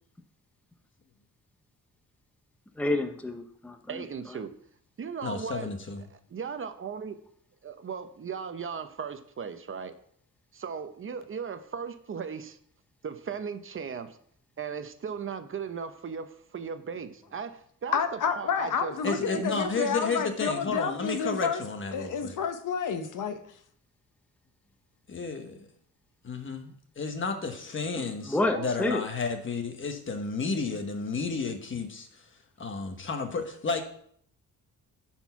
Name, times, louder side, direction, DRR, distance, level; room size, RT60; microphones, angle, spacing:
voice 1, 2.8-4.4 28.0-29.0, left 2 dB, 5° left, 0.7 m, -30 dB
voice 2, 3.9-4.5 5.0-5.7 6.3-7.2 7.6-9.9 10.5-12.6 13.0-14.2 14.6-19.5 28.5-29.0, right 6 dB, 40° right, 0.7 m, -37 dB
voice 3, 5.2-6.0 19.0-22.4 25.1-25.7 26.2-32.3 32.6-33.8, left 4 dB, 35° left, 1.3 m, -32 dB
voice 4, 17.9-21.6 21.9-23.4, left 6 dB, 65° left, 1.0 m, -29 dB
10.5 x 4.4 x 5.7 m
cardioid pair, 135°, 33 cm